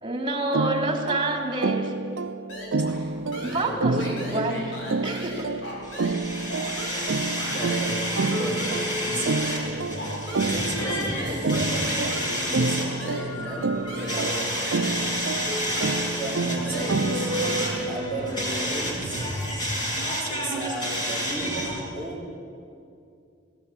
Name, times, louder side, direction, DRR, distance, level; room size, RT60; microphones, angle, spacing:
voice 1, 0.0-1.9 3.4-4.6 5.0-5.5, right 2 dB, 25° right, 2 dB, 3.3 m, -28 dB
sound 1, 0.5-18.0, right 3 dB, 90° right, 0.6 m, -29 dB
sound 2, 2.5-3.1 3.3-6.2 6.5-15.1 15.5-18.6, left 1 dB, 75° left, 5.9 m, -37 dB
voice 2, 3.3-4.4 7.4-9.4 10.5-14.6 16.2-17.3 17.9-19.2 20.2-22.3, right 1 dB, 10° left, -4 dB, 4.8 m, -34 dB
sound 3, 5.8-21.8, equal, 25° left, 6.8 m, -30 dB
20.0 x 18.0 x 9.9 m, 2.5 s
head